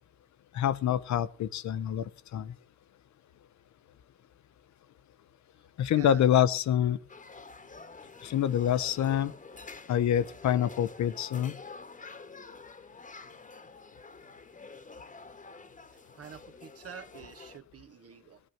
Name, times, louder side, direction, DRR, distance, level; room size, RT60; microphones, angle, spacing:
voice 1, 0.5-2.5 5.8-7.0 8.2-9.3 9.9-11.6, left 10 dB, 65° left, 14 dB, 0.9 m, -26 dB
voice 2, 5.9-6.4 16.2-18.4, right 8 dB, 50° right, 8 dB, 1.6 m, -47 dB
sound 1, 7.1-17.6, left 4 dB, 25° left, 1.5 m, -48 dB
18.0 x 9.8 x 5.9 m, 0.41 s
cardioid pair, 90°, 30 cm